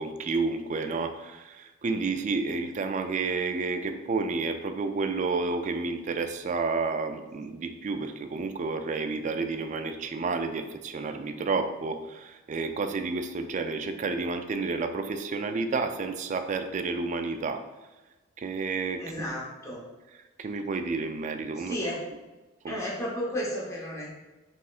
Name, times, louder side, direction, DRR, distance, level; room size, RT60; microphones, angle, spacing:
voice 1, 0.0-17.6 18.4-19.0 20.4-21.8 22.6-22.8, right 4 dB, 35° right, 7 dB, 0.3 m, -30 dB
voice 2, 19.0-19.8 21.6-22.0 22.6-24.1, equal, 15° left, -5 dB, 0.9 m, -33 dB
5.5 x 3.1 x 2.4 m, 1.1 s
head